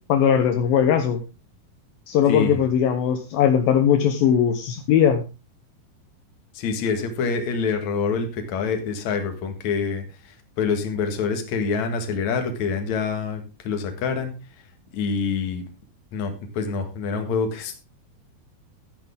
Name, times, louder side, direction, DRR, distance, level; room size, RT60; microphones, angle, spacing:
voice 1, 0.1-1.2 2.1-5.2, left 8 dB, 70° left, 6 dB, 2.7 m, -19 dB
voice 2, 2.3-2.6 6.5-14.3 14.9-15.6 16.1-17.7, left 5 dB, 55° left, 6 dB, 2.7 m, -26 dB
12.0 x 10.5 x 3.6 m, 0.29 s
omnidirectional pair, 4.5 m